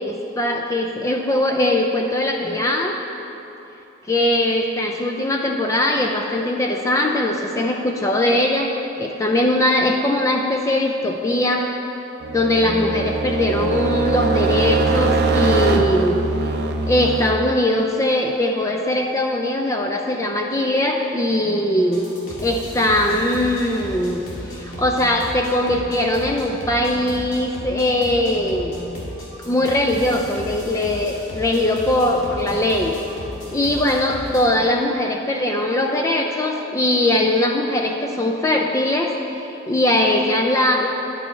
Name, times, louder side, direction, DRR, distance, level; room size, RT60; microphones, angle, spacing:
voice 1, 0.0-3.0 4.1-11.7 12.3-16.2 16.9-22.0 22.4-24.2 24.5-28.8 29.5-33.0 33.5-39.1 39.4-40.9, left 1 dB, 15° left, 2 dB, 0.3 m, -20 dB
sound 1, 12.2-17.3, right 3 dB, 55° right, 0.5 m, -21 dB
sound 2, 21.8-34.4, equal, 85° left, 1.8 m, -35 dB
9.8 x 5.4 x 4.3 m, 3.0 s
head